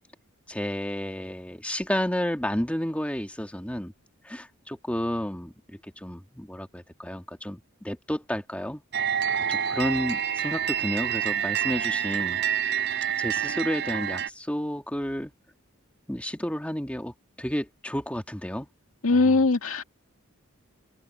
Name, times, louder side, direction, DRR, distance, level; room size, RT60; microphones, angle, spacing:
voice 1, 0.5-3.9 4.2-8.8 9.5-12.4 13.2-15.3 16.1-18.7 19.1-19.5, equal, 5° left, 1.9 m, -31 dB
sound 1, 8.9-14.3, right 9 dB, 55° right, 4.8 m, -27 dB
voice 2, 19.0-19.8, left 3 dB, 90° left, 1.8 m, -21 dB
head